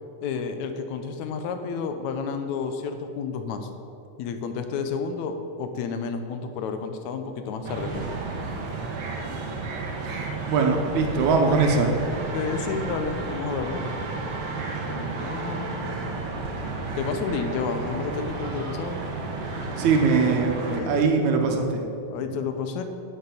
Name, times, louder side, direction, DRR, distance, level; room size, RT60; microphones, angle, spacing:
voice 1, 0.2-3.7 4.2-8.1 12.3-13.8 14.9-16.1 17.0-19.0 20.6-21.0 22.1-22.8, left 5 dB, 80° left, 7 dB, 2.1 m, -31 dB
sound 1, 7.6-20.8, right 3 dB, 55° right, 1.6 m, -32 dB
voice 2, 10.5-11.9 19.8-21.8, right 4 dB, 80° right, 3 dB, 2.4 m, -21 dB
10.5 x 6.7 x 7.1 m, 2.7 s
omnidirectional pair, 3.4 m